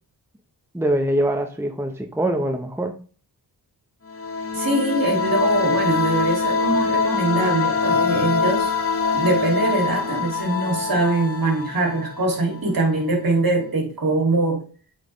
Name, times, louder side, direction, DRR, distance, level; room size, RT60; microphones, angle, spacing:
voice 1, 0.7-2.9 7.9-8.2, right 1 dB, 5° right, 4 dB, 0.9 m, -24 dB
sound 1, 4.1-12.7, left 4 dB, 35° left, 1.2 m, -24 dB
voice 2, 4.5-8.7 9.1-14.6, right 2 dB, 55° right, 1 dB, 2.7 m, -22 dB
8.4 x 4.3 x 3.2 m, 0.38 s
cardioid pair, 60°, 42 cm